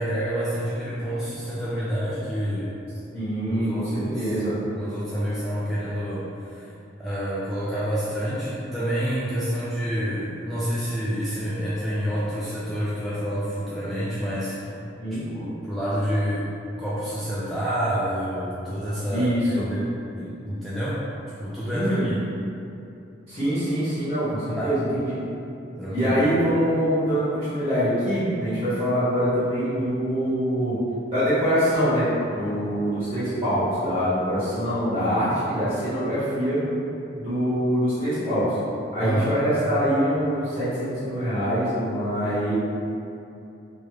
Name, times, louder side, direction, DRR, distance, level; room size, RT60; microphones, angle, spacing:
voice 1, 0.0-2.8 3.5-4.3 4.8-6.7 7.0-14.7 15.3-16.5 16.8-19.9 20.1-21.0 21.4-22.1 24.6-24.8 25.8-26.2 39.0-39.4, equal, ahead, -11 dB, 0.3 m, -28 dB
voice 2, 3.1-4.5 15.0-15.2 19.1-19.6 21.7-22.0 23.3-25.2 25.9-30.8 31.1-36.6 37.2-38.6 38.9-42.5, equal, 30° right, -14 dB, 1.3 m, -24 dB
3.2 x 2.3 x 3.1 m, 2.7 s
head